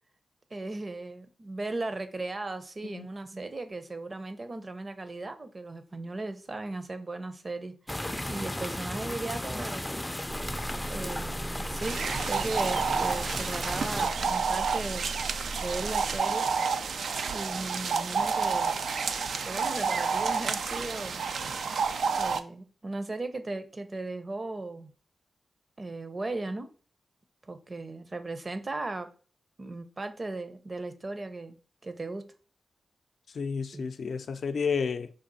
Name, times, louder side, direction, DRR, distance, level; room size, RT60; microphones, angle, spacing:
voice 1, 0.5-7.7 8.3-9.9 10.9-15.1 15.6-16.5 17.3-18.8 19.5-21.2 22.2-24.9 25.8-26.7 27.4-29.1 29.6-31.6 31.8-32.2 33.7-33.9, right 2 dB, 45° right, 0.7 m, -37 dB
sound 1, 7.9-14.1, left 1 dB, 15° left, 0.4 m, -35 dB
sound 2, 10.3-16.2, right 2 dB, 60° right, 1.2 m, -40 dB
sound 3, 11.8-22.4, right 5 dB, 80° right, 0.4 m, -30 dB
voice 2, 33.3-35.1, left 5 dB, 70° left, 0.5 m, -31 dB
5.0 x 2.4 x 4.1 m
cardioid pair, 45°, 0 cm